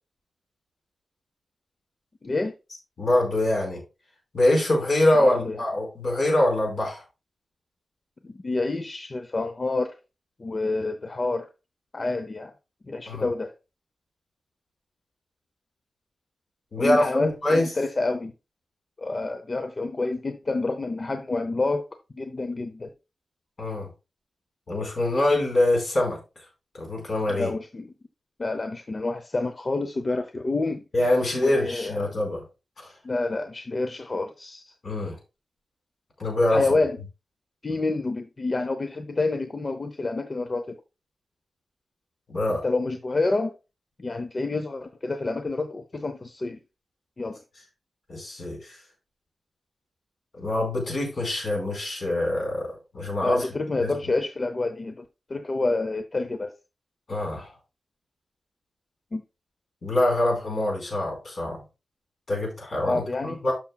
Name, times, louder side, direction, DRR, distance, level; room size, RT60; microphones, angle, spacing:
voice 1, 2.2-2.5 5.2-5.6 8.2-9.9 10.4-11.5 11.9-12.5 12.9-13.5 16.8-18.3 19.0-21.9 22.1-22.9 27.3-27.9 28.4-30.8 31.3-32.1 33.0-34.6 36.5-37.0 37.6-40.8 42.6-43.6 44.0-46.6 47.2-47.4 53.2-56.5 59.1-59.2 62.8-63.4, left 3 dB, 35° left, 0.6 m, -28 dB
voice 2, 3.0-3.8 4.3-7.0 13.1-13.3 16.7-17.7 23.6-23.9 24.7-26.2 26.7-27.5 30.9-32.4 32.8-32.9 34.8-35.2 36.2-36.6 42.3-42.6 48.1-48.8 50.4-53.5 53.8-53.9 57.1-57.5 59.8-61.6 62.3-63.5, left 1 dB, 55° left, 4.5 m, -24 dB
12.5 x 5.9 x 2.3 m
wide cardioid pair, 160°, 0 cm